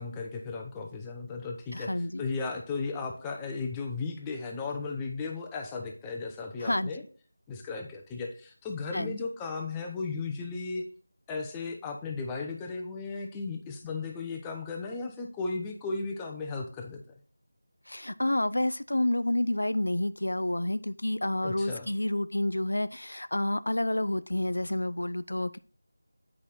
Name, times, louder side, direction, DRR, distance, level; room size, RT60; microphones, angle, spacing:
voice 1, 0.0-7.0 7.5-10.8 11.3-17.0 21.4-21.9, left 4 dB, 10° left, 1 dB, 0.7 m, -35 dB
voice 2, 1.7-2.2 6.6-6.9 8.9-9.2 17.9-25.6, left 1 dB, 75° left, 14 dB, 0.4 m, -29 dB
8.4 x 4.8 x 4.1 m, 0.40 s
figure-of-eight pair, 170°, 0 cm